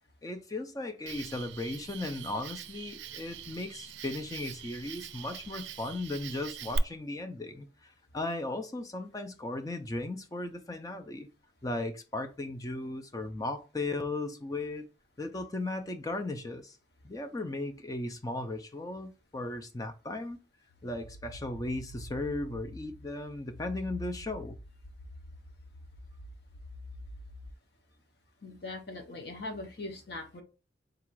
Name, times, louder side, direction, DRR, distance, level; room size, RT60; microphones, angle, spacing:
voice 1, 0.2-11.3 11.6-14.8 15.2-16.8 17.0-20.4 20.8-24.6, left 2 dB, 20° left, 0.4 m, -36 dB
Cricket, 1.1-6.8, right 7 dB, 70° right, 0.4 m, -43 dB
sound 1, 20.7-27.5, left 1 dB, 80° left, 0.5 m, -47 dB
voice 2, 28.4-30.4, left 2 dB, 60° left, 0.9 m, -40 dB
3.8 x 2.4 x 4.5 m
head